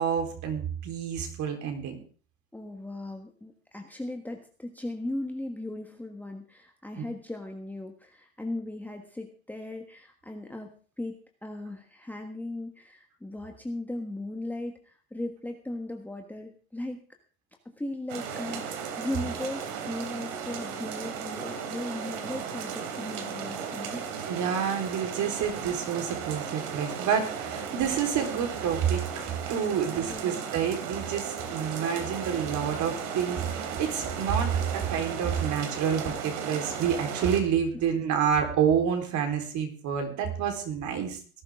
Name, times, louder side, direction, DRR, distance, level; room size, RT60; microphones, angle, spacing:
voice 1, 0.0-2.0 24.3-29.2 29.5-41.2, right 7 dB, 40° right, 4 dB, 4.1 m, -28 dB
voice 2, 2.5-17.0 17.8-24.0 30.0-30.5, left 1 dB, 5° left, 3 dB, 1.4 m, -37 dB
sound 1, 18.1-37.4, right 6 dB, 60° right, 3.3 m, -35 dB
19.0 x 11.5 x 3.7 m, 0.40 s
hypercardioid pair, 115°, 44 cm